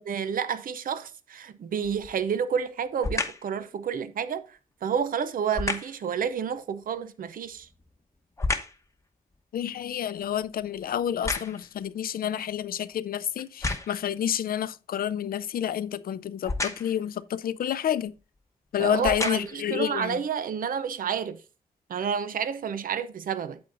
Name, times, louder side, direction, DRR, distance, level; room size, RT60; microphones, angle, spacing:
voice 1, 0.0-7.7 18.8-21.4 21.9-23.6, right 7 dB, 70° right, 0.6 m, -30 dB
sound 1, 1.8-2.2 3.0-3.5 5.5-6.0 7.4-8.9 9.3-11.8 12.5-12.6 13.4-14.1 16.4-17.0 18.0-18.2 18.9-19.7 20.3-20.4, left 3 dB, 20° left, 0.9 m, -32 dB
voice 2, 9.5-18.1 18.7-20.2, left 10 dB, 75° left, 0.4 m, -29 dB
8.5 x 7.9 x 2.6 m
wide cardioid pair, 110°, 15 cm